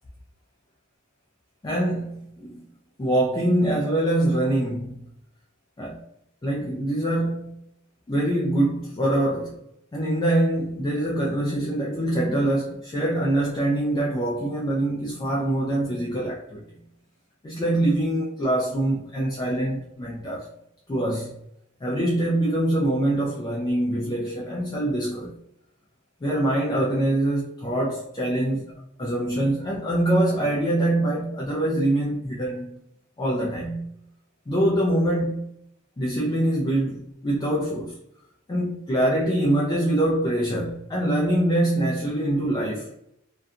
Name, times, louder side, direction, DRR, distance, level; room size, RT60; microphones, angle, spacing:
voice 1, 1.6-2.6 3.0-5.0 5.8-6.0 6.4-7.5 8.1-9.6 9.9-16.6 17.4-20.5 20.9-21.4 21.8-25.3 26.2-32.8 33.2-33.9 34.5-35.5 36.0-38.0 38.5-42.9, right 1 dB, 20° left, 0.3 m, -24 dB
2.4 x 2.2 x 2.6 m
head